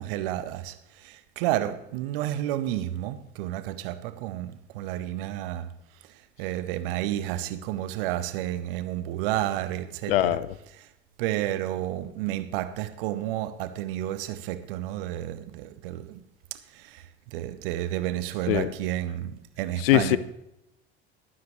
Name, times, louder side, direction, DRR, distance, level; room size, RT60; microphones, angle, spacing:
voice 1, 0.0-5.7 6.4-10.4 10.8-10.9 11.2-16.2 16.7-20.2, right 13 dB, 60° right, 0.9 m, -31 dB
voice 2, 10.1-10.5 18.5-18.7 19.8-20.2, left 15 dB, 65° left, 0.6 m, -21 dB
22.0 x 7.7 x 3.2 m
figure-of-eight pair, 60°, 31 cm